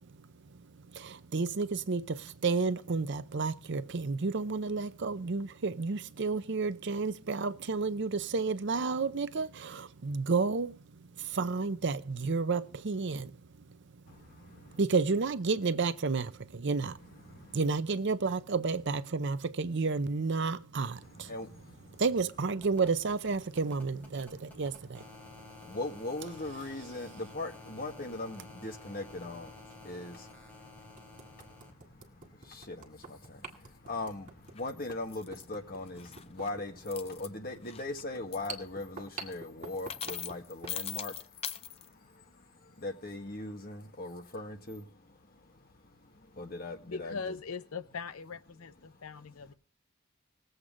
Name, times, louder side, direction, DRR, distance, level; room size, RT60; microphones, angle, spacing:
voice 1, 0.9-10.8 11.2-13.4 14.8-17.0 17.5-21.3 22.0-25.0, right 4 dB, 50° right, 0.6 m, -31 dB
voice 2, 14.1-14.8 17.3-17.6 21.0-22.0 24.2-24.6 25.2-47.2, left 2 dB, 40° left, 1.7 m, -41 dB
sound 1, 21.0-31.7 33.1-33.2, left 2 dB, 10° left, 3.2 m, -52 dB
sound 2, 28.1-28.2 29.7-29.8 30.3-30.4 31.0-40.8, right 3 dB, 35° right, 2.0 m, -48 dB
sound 3, 34.6-34.7 35.1-35.4 35.9-36.5 36.9-37.3 37.6-38.0 38.3-38.5 39.3-39.4 39.8-41.9, left 9 dB, 25° left, 0.5 m, -40 dB
voice 3, 46.9-49.5, left 5 dB, 75° left, 0.6 m, -40 dB
20.5 x 8.0 x 3.8 m
head